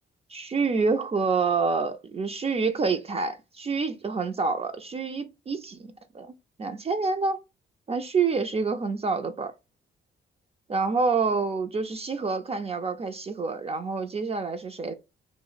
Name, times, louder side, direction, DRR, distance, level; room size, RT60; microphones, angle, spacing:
voice 1, 0.3-6.3 6.6-7.4 7.9-9.5 10.7-14.9, right 4 dB, 30° right, 0.4 m, -27 dB
2.4 x 2.1 x 3.8 m
cardioid pair, 80°, 20 cm